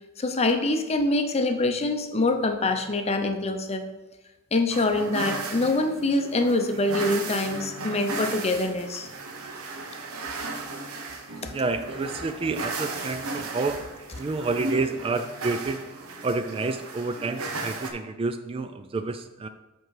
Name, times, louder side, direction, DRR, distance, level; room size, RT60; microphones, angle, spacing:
voice 1, 0.2-3.8 4.5-9.1, left 2 dB, 30° left, 6 dB, 0.6 m, -25 dB
sound 1, 4.7-17.9, right 3 dB, 90° right, 0.9 m, -35 dB
voice 2, 11.5-13.9 14.2-15.8 16.2-19.5, right 3 dB, 25° right, 9 dB, 0.3 m, -29 dB
7.4 x 4.6 x 4.7 m, 1.1 s
head